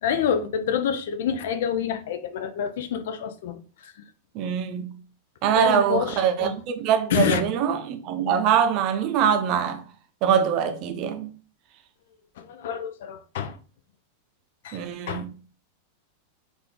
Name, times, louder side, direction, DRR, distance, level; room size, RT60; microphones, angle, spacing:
voice 1, 0.0-3.9 5.5-6.5 7.1-7.4 12.4-13.6 14.6-14.8 15.1-15.2, left 8 dB, 55° left, 0.5 m, -27 dB
voice 2, 4.3-4.9 5.4-9.8 10.2-11.3 14.7-15.3, right 8 dB, 40° right, 0.6 m, -23 dB
4.3 x 2.5 x 3.7 m
figure-of-eight pair, 90°, 0 cm